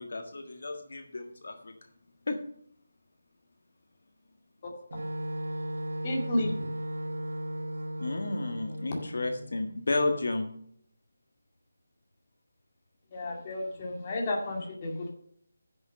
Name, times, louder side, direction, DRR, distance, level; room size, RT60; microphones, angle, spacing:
voice 1, 0.0-1.7 2.3-2.4 8.0-10.5, left 2 dB, 55° left, 5 dB, 1.6 m, -32 dB
Wind instrument woodwind instrument, 4.9-9.6, equal, 70° right, 2.0 m, -36 dB
voice 2, 6.0-6.7 13.1-15.1, left 1 dB, 20° left, 0 dB, 2.0 m, -32 dB
10.5 x 6.7 x 6.4 m, 0.65 s
figure-of-eight pair, 175°, 0 cm